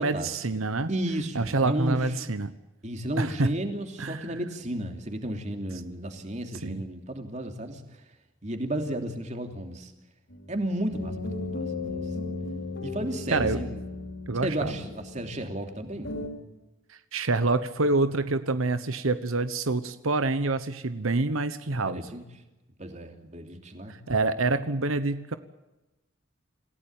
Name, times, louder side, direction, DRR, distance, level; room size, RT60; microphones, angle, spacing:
voice 1, 0.0-0.9 1.3-2.5 3.2-3.5 4.0-4.2 6.6-6.8 13.3-13.6 14.3-14.7 16.9-22.0 23.9-25.4, right 3 dB, 85° right, 11 dB, 1.1 m, -27 dB
voice 2, 0.9-2.0 2.8-7.8 8.4-9.9 10.5-12.0 12.8-13.8 14.4-16.1 21.7-22.2 22.8-23.9, right 1 dB, 35° right, 5 dB, 3.0 m, -33 dB
sound 1, 10.3-16.3, left 3 dB, 65° left, 5.3 m, -36 dB
27.5 x 16.5 x 9.0 m, 1.0 s
head